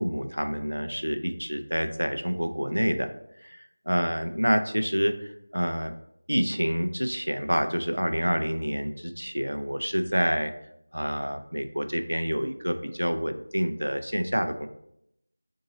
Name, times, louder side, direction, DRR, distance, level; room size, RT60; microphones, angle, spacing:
voice 1, 0.0-3.1 3.4-3.6 3.9-5.9 6.3-10.5 10.9-14.7, equal, 90° right, 7 dB, 0.5 m, -27 dB
3.7 x 2.7 x 3.9 m, 0.76 s
figure-of-eight pair, 170°, 0 cm